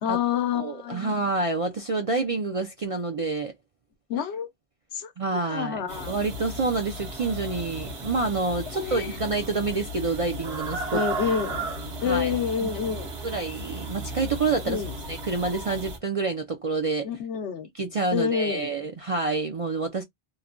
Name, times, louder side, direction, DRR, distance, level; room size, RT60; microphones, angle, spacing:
voice 1, 0.0-1.2 4.1-4.5 4.9-6.1 8.7-9.2 10.9-11.7 12.0-13.1 14.6-14.9 17.0-17.7 18.1-18.7, left 7 dB, 80° left, 1.0 m, -28 dB
voice 2, 0.5-3.5 5.2-11.0 12.1-12.3 12.6-12.7 13.2-14.8 15.1-17.1 17.7-20.0, right 3 dB, 50° right, 0.4 m, -28 dB
sound 1, 5.9-16.0, right 2 dB, 75° right, 1.3 m, -35 dB
3.1 x 2.2 x 2.4 m
omnidirectional pair, 1.1 m